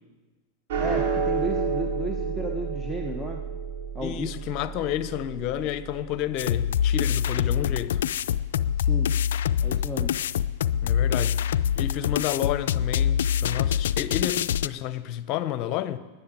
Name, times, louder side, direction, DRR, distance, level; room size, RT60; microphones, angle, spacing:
sound 1, 0.7-7.2, right 5 dB, 65° right, 3.6 m, -31 dB
voice 1, 0.8-3.4 3.9-4.3 8.8-9.1 9.6-10.1, equal, 5° right, 1.2 m, -33 dB
voice 2, 4.0-8.0 10.8-11.4 11.8-16.0, left 12 dB, 50° left, 0.9 m, -30 dB
sound 2, 6.4-14.7, left 9 dB, 75° left, 0.4 m, -25 dB
10.5 x 9.8 x 9.0 m
hypercardioid pair, 100°, 0 cm